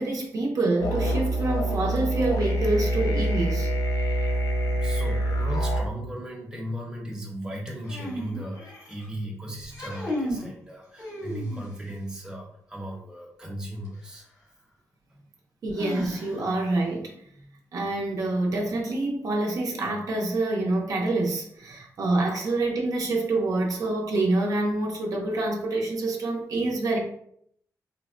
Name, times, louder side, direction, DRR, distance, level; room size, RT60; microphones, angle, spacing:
voice 1, 0.0-3.7 15.6-17.1 17.7-27.0, right 2 dB, 65° right, -1 dB, 0.6 m, -26 dB
sound 1, 0.8-5.8, right 1 dB, 70° left, 0.5 m, -25 dB
voice 2, 4.7-14.3 15.1-15.2 17.3-17.6, right 1 dB, 10° right, -2 dB, 0.8 m, -37 dB
sound 2, 7.8-9.1 9.6-10.5 11.0-11.9 13.8-13.9 15.8-16.6, equal, 90° left, 1.4 m, -34 dB
3.4 x 2.1 x 2.4 m, 0.67 s
cardioid pair, 100°, 6 cm